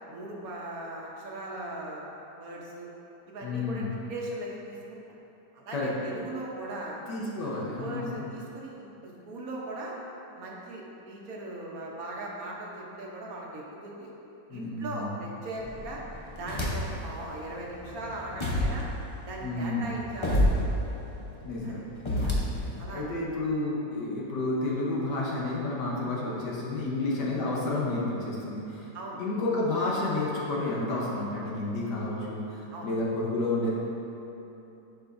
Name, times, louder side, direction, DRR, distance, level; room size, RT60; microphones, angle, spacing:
voice 1, 0.1-2.0 2.4-2.9 3.3-5.2 5.5-7.0 7.8-9.9 10.3-14.1 14.5-16.0 16.4-18.9 19.3-20.7 21.6-21.7 22.2-22.4 22.8-23.0 28.9-29.2 32.7-32.9, right 1 dB, 60° right, -3 dB, 1.3 m, -39 dB
voice 2, 3.4-3.9 5.7-5.9 7.1-8.3 14.5-15.1 19.4-19.9 21.4-28.9 29.2-33.7, left 2 dB, 75° left, -5 dB, 1.6 m, -31 dB
sound 1, 15.6-17.1 17.5-22.8, equal, 40° left, 0.4 m, -30 dB
11.0 x 5.1 x 2.6 m, 2.9 s
omnidirectional pair, 1.9 m